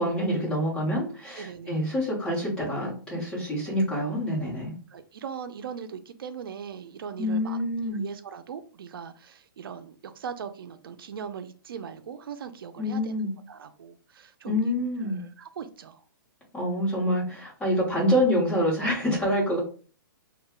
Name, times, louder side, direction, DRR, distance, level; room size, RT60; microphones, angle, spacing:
voice 1, 0.0-4.7 7.2-8.0 12.8-13.3 14.4-15.2 16.5-19.6, equal, 5° left, -5 dB, 1.1 m, -26 dB
voice 2, 1.4-1.9 4.9-7.6 7.9-13.1 13.5-14.6 15.0-16.0, right 7 dB, 85° right, 9 dB, 0.4 m, -40 dB
2.2 x 2.1 x 3.6 m, 0.39 s
hypercardioid pair, 155°, 12 cm